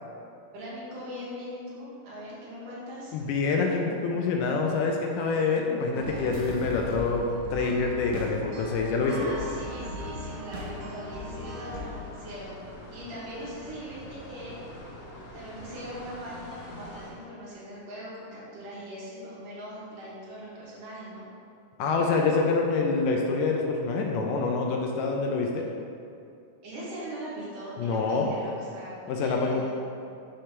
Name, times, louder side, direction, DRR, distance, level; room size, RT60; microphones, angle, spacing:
voice 1, 0.5-3.2 9.0-14.6 15.3-21.3 26.6-29.7, equal, 70° right, -7 dB, 2.8 m, -40 dB
voice 2, 3.1-9.3 21.8-25.7 27.8-28.3 29.1-29.6, left 4 dB, 80° left, 1 dB, 2.1 m, -26 dB
sound 1, 5.9-12.0, left 1 dB, 90° right, 2.5 m, -38 dB
sound 2, 9.5-17.1, left 1 dB, 65° left, 2.4 m, -45 dB
6.4 x 2.9 x 5.1 m, 2.5 s
omnidirectional pair, 3.9 m